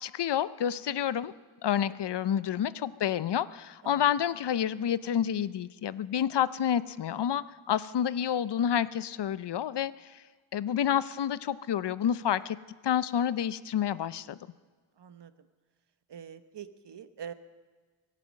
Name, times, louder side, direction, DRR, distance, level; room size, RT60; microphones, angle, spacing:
voice 1, 0.0-1.3 1.6-10.2 10.5-12.6 12.8-14.4, left 9 dB, 60° left, 16 dB, 0.6 m, -29 dB
voice 2, 15.0-15.5 16.1-17.3, right 8 dB, 60° right, 10 dB, 1.0 m, -45 dB
23.5 x 8.6 x 6.4 m, 1.4 s
cardioid pair, 80°, 47 cm